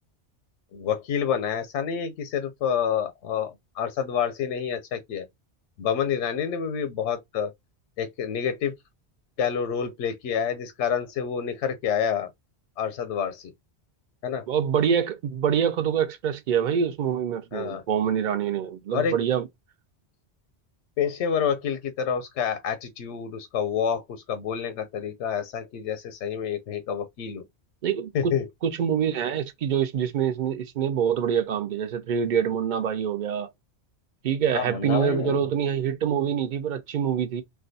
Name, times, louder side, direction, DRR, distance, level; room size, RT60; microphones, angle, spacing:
voice 1, 0.7-5.3 5.8-7.5 8.0-8.7 9.4-12.3 12.8-13.4 14.2-14.4 17.5-17.8 18.9-19.1 21.0-27.4 28.1-28.5 34.5-35.5, left 7 dB, 90° left, 0.9 m, -28 dB
voice 2, 14.5-19.5 27.8-28.3 28.6-33.5 34.2-37.4, right 8 dB, 55° right, 0.6 m, -25 dB
2.5 x 2.2 x 3.9 m
omnidirectional pair, 1.1 m